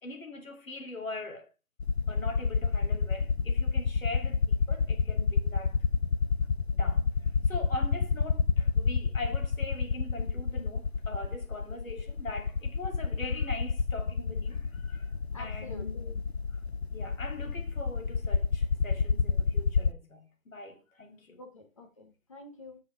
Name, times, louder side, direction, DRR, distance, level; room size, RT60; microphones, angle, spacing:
voice 1, 0.0-1.5 2.1-5.8 6.7-7.1 7.5-16.1 16.5-16.6 16.9-21.4, left 2 dB, 80° left, 2.9 m, -42 dB
sound 1, 1.8-19.9, left 5 dB, 55° left, 0.5 m, -29 dB
voice 2, 15.3-16.2 21.4-22.8, left 2 dB, 25° left, 1.1 m, -47 dB
12.5 x 6.0 x 3.4 m
hypercardioid pair, 170°, 40 cm